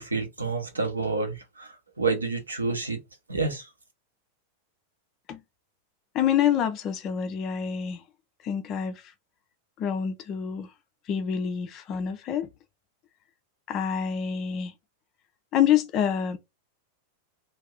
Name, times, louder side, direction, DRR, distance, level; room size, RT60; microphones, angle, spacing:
voice 1, 0.0-3.0 3.3-3.7, right 4 dB, 80° right, 0.8 m, -29 dB
voice 2, 6.1-8.0 8.4-9.1 9.8-10.7 11.1-12.5 13.7-14.7 15.5-16.4, left 9 dB, 35° left, 0.4 m, -27 dB
2.6 x 2.2 x 3.3 m
figure-of-eight pair, 90°, 0 cm